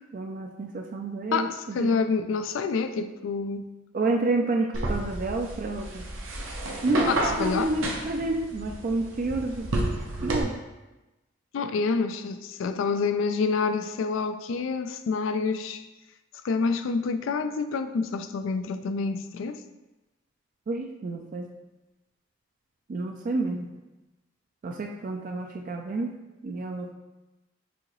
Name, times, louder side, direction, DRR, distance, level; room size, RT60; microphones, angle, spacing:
voice 1, 0.0-1.9 3.9-6.0 6.8-9.9 10.2-10.5 20.7-21.5 22.9-23.7 24.6-26.1 26.4-26.9, right 2 dB, 40° right, 3 dB, 0.3 m, -29 dB
voice 2, 1.3-3.7 7.1-7.7 11.5-15.8 16.4-19.6, left 4 dB, 85° left, 10 dB, 0.3 m, -27 dB
sound 1, 4.7-10.4, right 1 dB, 90° right, 0.7 m, -31 dB
6.2 x 2.8 x 3.0 m, 1.1 s
head